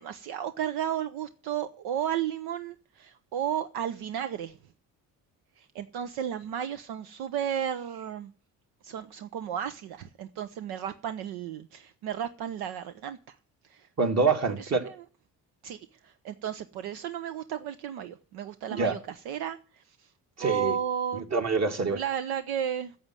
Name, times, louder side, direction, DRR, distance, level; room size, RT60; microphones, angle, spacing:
voice 1, 0.0-4.6 5.6-8.3 8.8-13.4 13.6-13.9 14.6-15.0 15.6-15.8 16.0-20.1 20.4-21.3 21.9-22.9, right 9 dB, 75° right, 0.8 m, -33 dB
voice 2, 14.0-14.9 18.7-19.0 20.4-20.7 21.1-22.0, right 4 dB, 40° right, 2.2 m, -26 dB
8.7 x 7.7 x 9.1 m
supercardioid pair, 65°, 39 cm